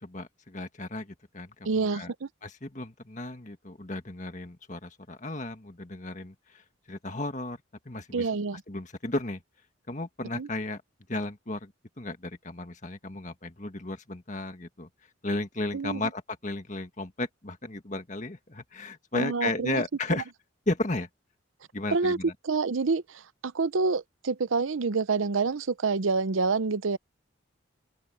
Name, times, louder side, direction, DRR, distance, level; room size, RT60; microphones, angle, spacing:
voice 1, 0.0-2.1 2.4-7.6 7.9-8.3 8.7-9.4 9.9-10.8 11.1-14.9 15.2-20.3 20.7-21.1 21.7-22.3, left 2 dB, 35° left, 1.8 m, -34 dB
voice 2, 1.7-2.3 8.1-8.6 10.3-10.5 15.7-16.0 19.1-19.8 21.9-22.2 22.4-27.0, right 4 dB, 80° right, 0.7 m, -27 dB
open air
head